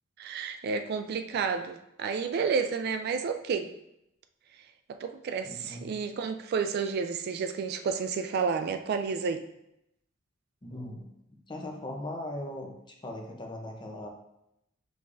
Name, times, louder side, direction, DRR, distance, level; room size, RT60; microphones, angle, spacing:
voice 1, 0.2-3.7 4.9-9.4, right 5 dB, 55° right, 8 dB, 0.3 m, -31 dB
voice 2, 5.4-5.9 10.6-11.1 11.5-12.7 13.0-14.1, left 1 dB, 25° left, 1 dB, 0.7 m, -39 dB
5.1 x 3.4 x 2.5 m, 0.81 s
head